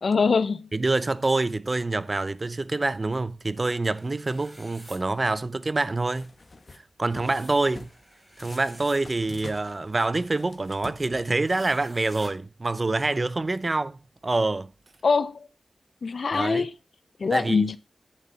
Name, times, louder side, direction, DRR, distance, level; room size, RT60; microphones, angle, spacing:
voice 1, 0.0-0.7 15.0-15.5 16.0-16.7 17.2-17.8, left 4 dB, 75° left, 0.8 m, -23 dB
voice 2, 0.7-6.3 7.0-7.9 8.4-14.7 16.3-16.7 17.3-17.7, right 2 dB, 40° right, 0.8 m, -26 dB
sound 1, 3.9-5.0 7.1-9.0 11.4-12.3, right 1 dB, 20° right, 4.5 m, -50 dB
sound 2, 6.2-6.8 7.1-8.0 8.4-11.6, left 2 dB, 50° left, 1.8 m, -46 dB
13.5 x 7.4 x 4.3 m
cardioid pair, 55°, 0 cm